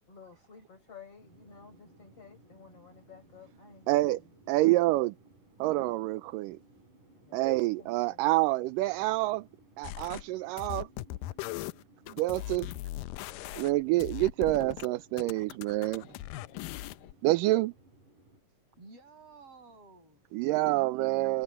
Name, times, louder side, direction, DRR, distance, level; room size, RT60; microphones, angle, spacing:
voice 1, 0.1-4.3 4.6-4.8 7.2-8.3, left 6 dB, 40° left, 5.9 m, -53 dB
sound 1, 1.2-18.4, right 2 dB, 65° right, 9.7 m, -60 dB
voice 2, 3.9-4.2 4.5-5.1 5.6-6.6 7.3-9.5 9.8-10.9 12.1-12.7 13.5-16.1 17.2-17.7 20.3-21.4, right 18 dB, 80° right, 2.2 m, -27 dB
sound 2, 9.8-10.2 10.6-14.9 15.2-17.1, left 17 dB, 80° left, 2.2 m, -39 dB
voice 3, 18.8-20.8, right 3 dB, 40° right, 7.6 m, -54 dB
omnidirectional pair, 4.0 m